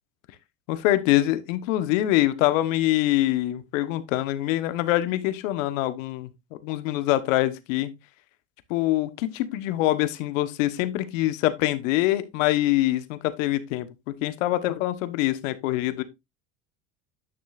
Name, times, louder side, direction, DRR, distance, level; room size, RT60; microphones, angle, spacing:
voice 1, 0.7-6.3 6.6-7.9 8.7-16.0, left 15 dB, 75° left, 1.1 m, -24 dB
9.7 x 6.3 x 2.4 m
supercardioid pair, 90°, 39 cm